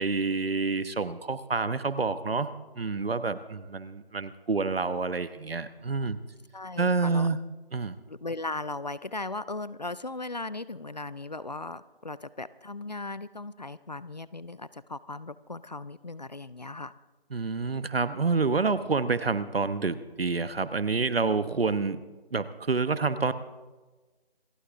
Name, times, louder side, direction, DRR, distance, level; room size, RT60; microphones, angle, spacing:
voice 1, 0.0-6.2 6.8-7.4 7.7-7.9 17.3-22.0 22.3-23.3, right 4 dB, 70° right, 13 dB, 1.1 m, -28 dB
voice 2, 6.5-7.3 8.1-16.9, left 2 dB, 45° left, 18 dB, 0.4 m, -37 dB
27.0 x 9.7 x 3.6 m, 1.2 s
figure-of-eight pair, 165°, 30 cm